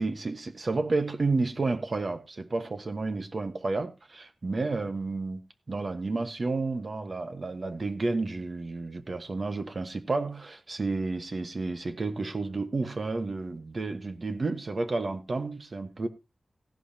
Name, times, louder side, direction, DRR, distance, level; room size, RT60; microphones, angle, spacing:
voice 1, 0.0-5.4 5.7-16.1, right 3 dB, 50° right, 1.3 m, -31 dB
16.0 x 11.0 x 2.8 m
wide cardioid pair, 90°, 0 cm